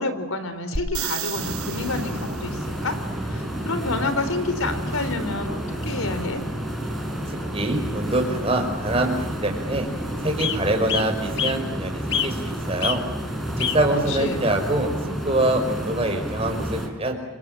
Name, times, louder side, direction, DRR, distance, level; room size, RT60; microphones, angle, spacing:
voice 1, 0.0-3.0 3.3-6.4 14.1-14.6, left 3 dB, 75° left, 10 dB, 4.0 m, -29 dB
sound 1, 0.8-2.6 6.4-6.5, right 6 dB, 90° right, 6.2 m, -32 dB
sound 2, 0.9-1.9 3.0-3.1 3.4-3.5 4.1-4.4 4.7-4.8 5.1-5.3 5.7-5.9 6.8-6.9 7.3-7.4 8.5-8.6 8.9-9.3 9.8-9.9 10.4-10.6 10.9-11.6 12.1-12.5 12.8-13.0 13.6-13.8 14.5-14.6, left 8 dB, 55° left, 2.2 m, -28 dB
sound 3, 1.3-16.9, equal, ahead, 5.2 m, -30 dB
voice 2, 7.3-9.9 10.2-13.0 13.6-14.9 15.3-17.2, right 1 dB, 25° right, 3 dB, 5.4 m, -25 dB
29.5 x 26.0 x 7.8 m, 1.0 s
head